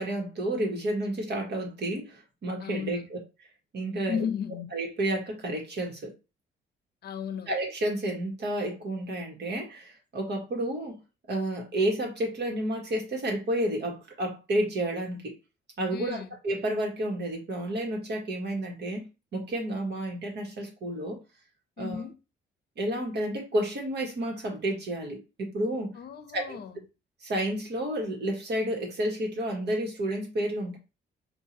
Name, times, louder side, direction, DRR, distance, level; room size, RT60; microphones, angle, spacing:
voice 1, 0.0-3.2 3.7-4.2 4.7-6.1 7.5-11.0 11.3-15.3 15.8-19.1 19.3-21.2 21.8-22.1 22.8-25.9 26.3-26.6 27.2-30.8, right 1 dB, 60° right, 1.5 m, -31 dB
voice 2, 2.6-3.0 4.1-4.7 7.0-7.5 15.9-16.3 21.8-22.2 25.9-26.8, left 7 dB, 55° left, 0.6 m, -34 dB
4.6 x 2.6 x 2.8 m
cardioid pair, 90°, 20 cm